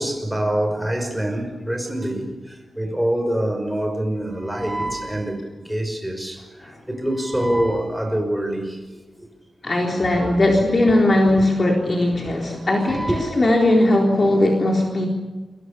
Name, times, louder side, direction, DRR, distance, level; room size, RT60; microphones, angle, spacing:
voice 1, 0.0-8.8 9.2-9.3 10.1-10.4 12.8-13.5, right 1 dB, 5° right, 5.8 m, -25 dB
voice 2, 9.6-15.1, left 1 dB, 35° left, 3.8 m, -18 dB
29.5 x 23.0 x 6.9 m
wide cardioid pair, 120°, 0 cm